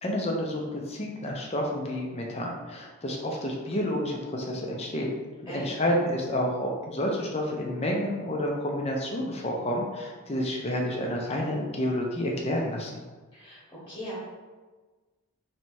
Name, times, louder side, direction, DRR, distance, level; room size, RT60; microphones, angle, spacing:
voice 1, 0.0-5.1 5.4-13.0, left 1 dB, 30° left, 0 dB, 0.6 m, -29 dB
voice 2, 13.3-14.1, equal, 15° left, -8 dB, 1.2 m, -39 dB
3.2 x 2.8 x 4.6 m, 1.3 s
head